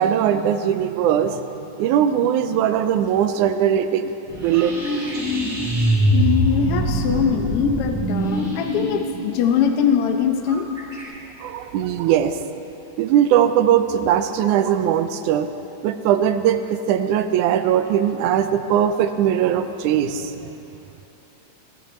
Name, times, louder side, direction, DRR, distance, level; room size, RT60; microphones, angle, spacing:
voice 1, 0.0-1.4 1.8-4.1 4.4-4.8 11.4-12.4 13.0-15.5 15.8-20.6, right 9 dB, 90° right, 10 dB, 2.1 m, -20 dB
sound 1, 4.3-11.0, right 1 dB, 65° right, 6.2 m, -23 dB
voice 2, 6.1-10.7, left 7 dB, 75° left, 5 dB, 1.3 m, -22 dB
22.0 x 12.5 x 4.3 m, 2.8 s
omnidirectional pair, 3.5 m